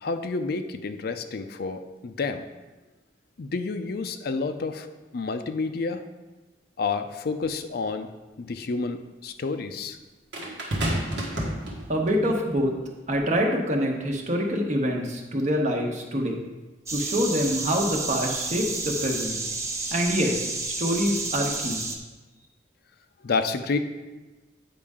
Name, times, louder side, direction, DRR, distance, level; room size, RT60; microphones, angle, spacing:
voice 1, 0.0-2.4 3.4-4.9 5.1-6.0 6.8-8.1 8.4-10.0 23.2-23.8, left 4 dB, 60° left, 8 dB, 0.5 m, -29 dB
sound 1, 7.4-7.5 10.3-12.2 13.1-13.4, right 1 dB, 90° right, 1.4 m, -30 dB
voice 2, 11.9-12.7 13.1-16.4 16.9-19.4 19.9-20.5 20.8-21.8, equal, 45° right, 1 dB, 1.0 m, -25 dB
sound 2, 16.9-22.0, right 3 dB, 15° right, 0.7 m, -31 dB
8.6 x 5.4 x 3.6 m, 1.2 s
head